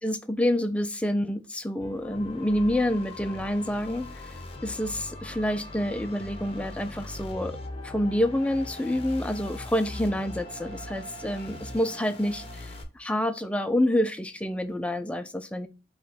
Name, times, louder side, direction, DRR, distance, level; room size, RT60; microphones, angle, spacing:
voice 1, 0.0-4.4 4.6-7.6 7.8-15.7, left 1 dB, 5° left, 0.3 m, -28 dB
sound 1, 1.8-12.8, left 1 dB, 30° left, 0.8 m, -40 dB
5.2 x 2.3 x 4.0 m
head